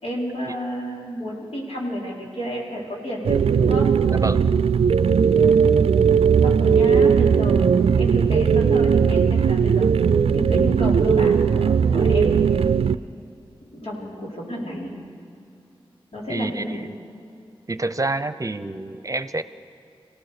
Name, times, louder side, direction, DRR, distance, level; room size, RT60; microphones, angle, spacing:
voice 1, 0.0-3.9 5.5-5.8 6.4-7.7 8.0-9.9 10.3-12.5 13.6-15.0 16.1-16.8, equal, 80° left, -3 dB, 4.5 m, -31 dB
sound 1, 3.2-13.0, right 6 dB, 90° right, 0.4 m, -18 dB
voice 2, 4.1-4.5 16.3-16.9 17.7-19.4, right 2 dB, 35° right, 12 dB, 0.8 m, -27 dB
25.0 x 17.0 x 6.8 m, 2.7 s
cardioid pair, 50°, 10 cm